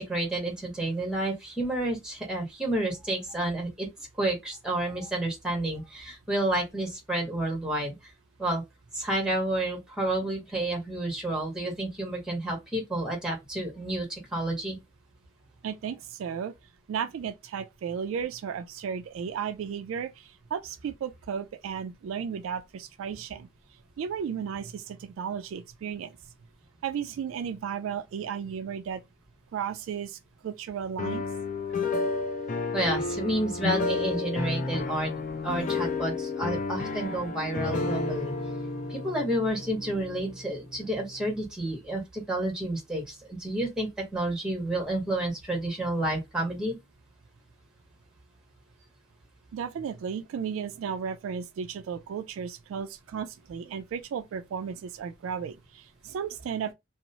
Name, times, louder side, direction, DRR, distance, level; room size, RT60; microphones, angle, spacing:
voice 1, 0.0-3.9 4.2-7.9 8.4-8.6 8.9-14.8 32.7-35.1 35.4-38.3 38.9-46.8, right 1 dB, 5° right, 1.0 m, -30 dB
voice 2, 15.6-16.5 16.9-23.5 24.0-26.2 26.8-29.0 29.5-31.2 49.5-56.7, right 7 dB, 75° right, 0.3 m, -34 dB
sound 1, 31.0-40.9, left 3 dB, 40° left, 0.4 m, -31 dB
2.8 x 2.0 x 2.6 m
head